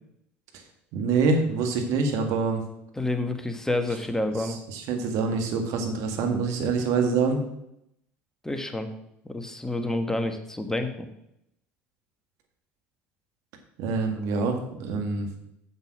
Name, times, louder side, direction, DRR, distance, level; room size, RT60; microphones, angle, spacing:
voice 1, 0.9-2.6 4.4-7.4 13.8-15.3, right 4 dB, 65° right, 4 dB, 1.8 m, -25 dB
voice 2, 2.9-4.6 8.4-8.9 9.2-11.1, left 2 dB, 10° left, 7 dB, 1.4 m, -29 dB
6.9 x 6.8 x 6.1 m, 0.80 s
hypercardioid pair, 80°, 6 cm